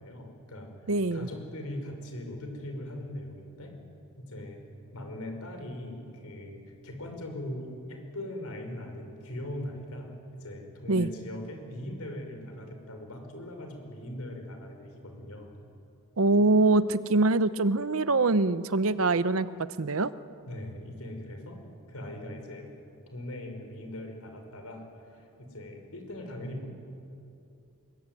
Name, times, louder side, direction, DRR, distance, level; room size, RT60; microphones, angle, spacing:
voice 1, 0.0-3.8 4.2-4.6 4.9-15.5 20.5-21.6 21.9-22.7 23.1-26.7, left 1 dB, 85° left, 4 dB, 5.5 m, -40 dB
voice 2, 0.9-1.3 10.9-11.1 16.2-19.5 19.8-20.1, right 2 dB, 70° right, 15 dB, 0.8 m, -24 dB
25.5 x 23.0 x 9.3 m, 2.6 s
head